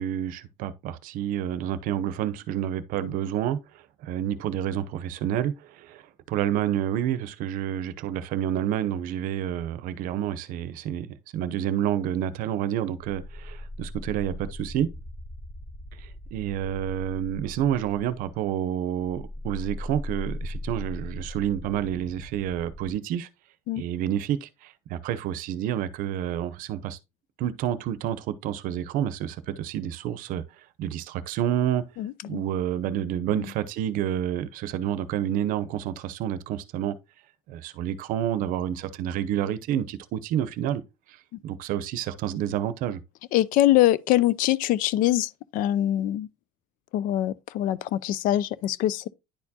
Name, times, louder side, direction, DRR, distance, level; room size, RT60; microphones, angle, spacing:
voice 1, 0.0-3.6 4.0-6.0 6.3-11.1 11.3-14.9 15.9-23.3 23.7-27.0 27.4-30.4 30.8-31.8 32.3-37.0 37.5-40.8 41.1-41.2 41.4-43.0, right 10 dB, 65° right, 0.7 m, -29 dB
sound 1, 13.0-18.5 18.9-22.9, left 1 dB, 20° left, 2.1 m, -39 dB
voice 2, 32.0-32.4 33.3-33.5 43.3-46.3 46.9-49.1, left 14 dB, 65° left, 0.5 m, -23 dB
10.0 x 4.4 x 2.8 m
cardioid pair, 150°, 15 cm